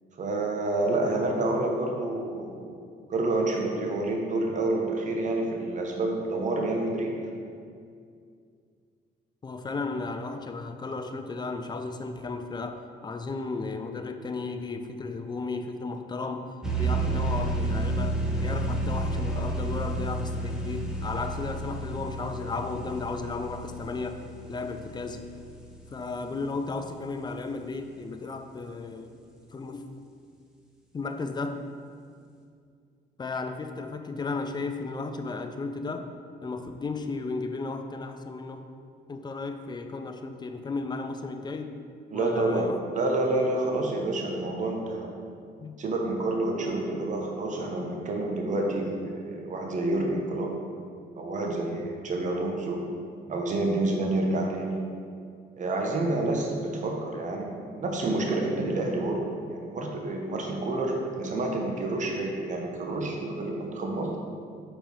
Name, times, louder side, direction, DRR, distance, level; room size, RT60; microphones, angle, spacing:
voice 1, 0.2-2.8 3.1-7.1 42.1-42.7 42.9-45.1 45.8-50.5 51.1-52.8 53.3-54.8 55.6-64.1, right 2 dB, 45° right, 1 dB, 0.9 m, -28 dB
voice 2, 9.4-16.5 16.8-24.2 24.5-25.3 25.9-29.1 29.5-29.8 30.9-31.6 33.2-36.1 36.4-38.6 39.1-41.8 42.1-42.8 45.6-45.8, left 3 dB, 25° left, 7 dB, 0.5 m, -34 dB
sound 1, 16.6-26.1, right 1 dB, 5° right, 0.9 m, -31 dB
4.5 x 4.4 x 5.3 m, 2.3 s
cardioid pair, 90°, 18 cm